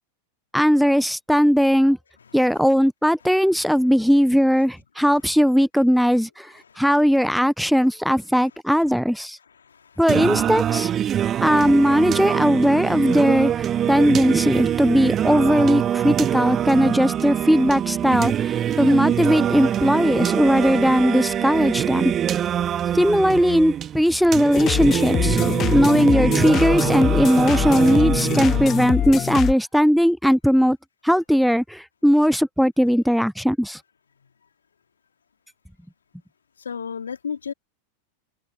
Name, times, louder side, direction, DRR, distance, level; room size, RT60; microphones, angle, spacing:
voice 1, 0.5-2.0 2.3-9.4 10.0-10.9 11.4-22.1 22.9-25.4 25.7-30.8 31.0-33.8, equal, ahead, 0.5 m, -19 dB
voice 2, 2.2-2.6 6.6-6.9 9.4-10.4 11.1-11.5 34.2-34.3 36.6-37.5, left 6 dB, 75° left, 2.6 m, -35 dB
Singing, 10.1-29.1, right 10 dB, 30° right, 2.2 m, -24 dB
sound 1, 24.5-29.5, left 11 dB, 30° left, 0.9 m, -24 dB
figure-of-eight pair, 90°, 0 cm